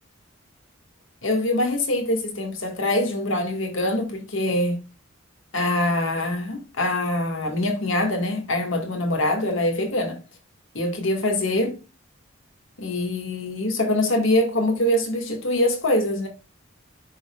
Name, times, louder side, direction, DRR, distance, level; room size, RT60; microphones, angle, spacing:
voice 1, 1.2-4.8 5.5-10.2 10.7-11.8 12.8-16.3, left 1 dB, 70° left, 1.9 m, -24 dB
10.0 x 4.1 x 2.4 m
head